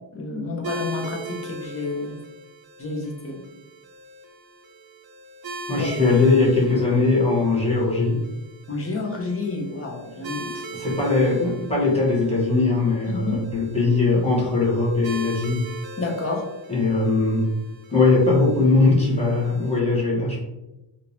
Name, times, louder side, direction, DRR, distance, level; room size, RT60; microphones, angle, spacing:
voice 1, 0.1-2.1 2.8-3.4 5.7-6.0 8.7-10.5 13.1-13.5 16.0-16.5, left 3 dB, 30° left, 0 dB, 0.7 m, -29 dB
sound 1, 0.6-19.8, right 2 dB, 50° right, 0.5 m, -40 dB
voice 2, 5.7-8.2 10.4-15.7 16.7-17.5 17.9-20.5, left 3 dB, 15° left, -6 dB, 1.2 m, -20 dB
3.6 x 2.6 x 2.9 m, 0.97 s
wide cardioid pair, 150°, 48 cm